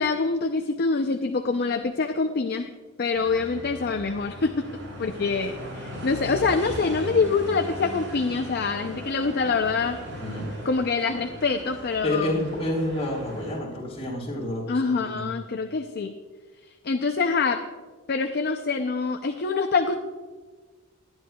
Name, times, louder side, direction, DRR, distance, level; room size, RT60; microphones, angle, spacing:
voice 1, 0.0-2.7 3.0-4.5 5.0-10.0 10.6-12.3 14.7-16.1 16.8-17.6 18.1-19.9, left 4 dB, 50° left, 5 dB, 0.5 m, -25 dB
sound 1, 3.1-13.6, equal, 60° right, 3.6 m, -38 dB
voice 2, 10.1-10.5 12.0-15.3, left 1 dB, 30° left, -4 dB, 3.7 m, -29 dB
19.5 x 10.5 x 2.3 m, 1.4 s
head